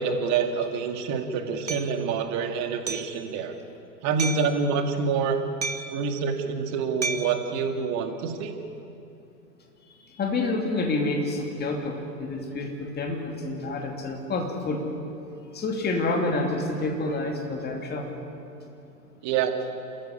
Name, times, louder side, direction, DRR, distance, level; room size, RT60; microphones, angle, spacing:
voice 1, 0.0-3.6 4.0-5.4 5.9-8.6 19.2-19.5, right 5 dB, 35° right, 6 dB, 2.1 m, -27 dB
Hammer, 1.7-1.9 2.9-3.2 4.2-4.5 5.6-6.0 7.0-7.4, right 4 dB, 90° right, 1.4 m, -31 dB
voice 2, 9.9-14.8 15.5-18.1, left 2 dB, 20° left, 2 dB, 2.9 m, -28 dB
27.0 x 14.5 x 8.4 m, 2.7 s
figure-of-eight pair, 105°, 49 cm